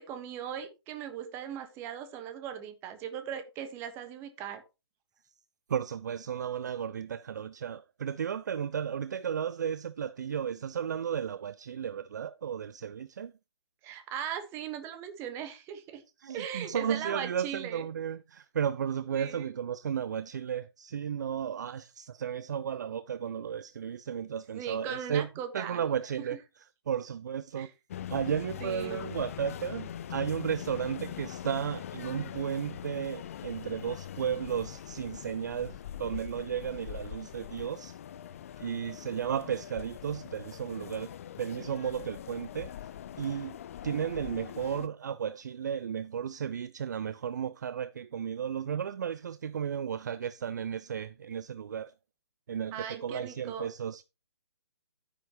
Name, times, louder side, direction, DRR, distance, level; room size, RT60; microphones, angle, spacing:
voice 1, 0.0-4.6 13.8-16.0 16.3-17.8 19.1-19.5 24.5-25.8 27.5-27.7 28.6-29.0 52.7-53.7, right 9 dB, 15° right, 1.3 m, -39 dB
voice 2, 5.7-13.3 16.2-25.3 25.5-27.7 28.1-38.0 38.6-41.1 41.4-42.7 43.2-43.6 43.8-51.9 52.5-54.0, right 8 dB, 40° right, 0.4 m, -34 dB
sound 1, 27.9-44.9, left 10 dB, 30° left, 0.5 m, -42 dB
10.5 x 10.0 x 3.0 m
figure-of-eight pair, 135°, 14 cm